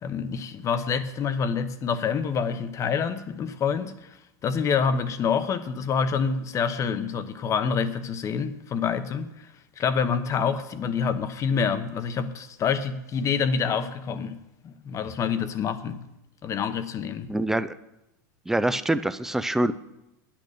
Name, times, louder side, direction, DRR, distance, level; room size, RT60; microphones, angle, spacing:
voice 1, 0.0-4.2 4.4-9.5 9.8-14.4 14.6-16.0 16.4-17.3, left 6 dB, 30° left, 1.0 m, -27 dB
voice 2, 17.3-17.7 18.5-19.7, right 1 dB, 5° right, 0.5 m, -25 dB
10.5 x 8.7 x 6.6 m
supercardioid pair, 125°, 10 cm